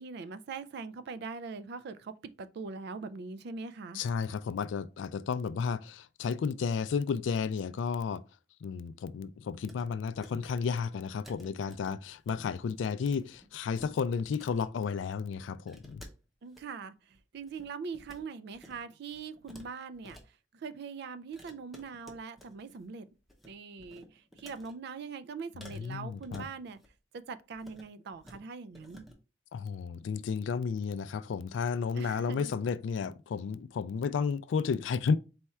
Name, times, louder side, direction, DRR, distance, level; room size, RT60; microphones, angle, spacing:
voice 1, 0.0-4.0 16.4-23.1 23.5-26.8 27.1-29.1 32.0-32.5, right 5 dB, 60° right, 0.4 m, -42 dB
voice 2, 3.9-8.2 8.6-16.0 25.7-26.5 29.5-35.2, left 6 dB, 85° left, 0.3 m, -32 dB
sound 1, 9.6-9.8 10.1-10.5 10.8-10.9 11.2-12.3 12.6-12.8 13.1-13.9 14.2-14.7 15.7-16.6 17.1-18.2 18.5-18.8 19.1-20.2 21.3-22.8 23.1-23.5 23.8-24.7 25.6-26.9 27.5-27.9 28.1-28.4 28.7-29.1, equal, ahead, 0.7 m, -53 dB
4.2 x 2.4 x 4.2 m
head